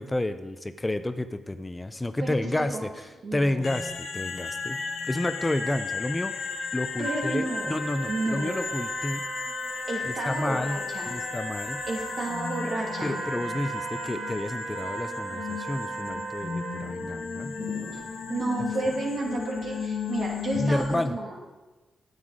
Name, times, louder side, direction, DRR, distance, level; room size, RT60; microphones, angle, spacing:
voice 1, 0.0-2.9 3.3-4.8 5.1-9.2 10.0-11.8 13.0-17.6 20.6-21.2, left 1 dB, 20° left, 11 dB, 0.5 m, -30 dB
voice 2, 2.2-2.8 3.2-3.6 7.0-7.8 8.1-8.6 9.9-11.1 11.9-13.2 17.6-18.0 18.3-21.4, right 2 dB, 60° right, -1 dB, 2.6 m, -32 dB
sound 1, 3.6-21.0, left 5 dB, 75° left, 1.1 m, -34 dB
sound 2, 7.0-16.9, right 7 dB, 85° right, 0.5 m, -39 dB
9.4 x 8.1 x 4.9 m, 1.2 s
cardioid pair, 60°, 0 cm